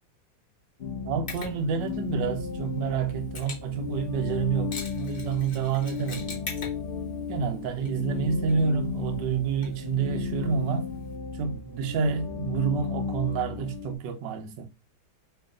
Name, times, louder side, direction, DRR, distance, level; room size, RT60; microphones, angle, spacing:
sound 1, 0.8-14.0, left 6 dB, 90° left, 0.5 m, -35 dB
voice 1, 1.0-6.5 7.3-10.9 11.3-14.7, right 6 dB, 70° right, 1.3 m, -28 dB
Mechanisms, 1.3-11.1, left 4 dB, 40° left, 0.9 m, -44 dB
3.0 x 3.0 x 3.6 m
omnidirectional pair, 2.1 m